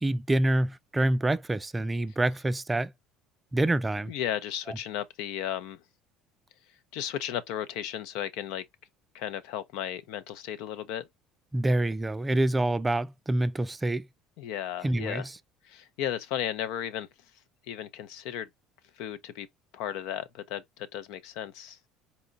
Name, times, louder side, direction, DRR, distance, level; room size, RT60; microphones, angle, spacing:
voice 1, 0.0-2.9 3.5-4.1 4.7-4.8 11.5-14.1 14.8-15.4, right 1 dB, 15° right, 0.3 m, -27 dB
voice 2, 4.1-5.8 6.9-8.6 9.1-11.1 14.4-15.3 15.6-17.1 17.7-18.5 19.0-19.5 19.7-21.8, left 10 dB, 75° left, 0.6 m, -34 dB
4.2 x 2.2 x 3.9 m
supercardioid pair, 115°, 0 cm